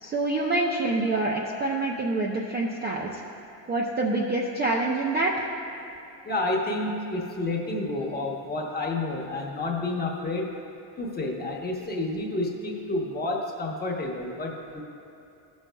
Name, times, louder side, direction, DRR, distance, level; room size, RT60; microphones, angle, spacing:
voice 1, 0.0-3.2 3.7-5.5, right 2 dB, 25° right, -2 dB, 0.4 m, -26 dB
voice 2, 6.2-10.5 11.0-14.8, left 2 dB, 20° left, -1 dB, 0.9 m, -30 dB
15.5 x 6.2 x 2.2 m, 2.8 s
cardioid pair, 145°, 46 cm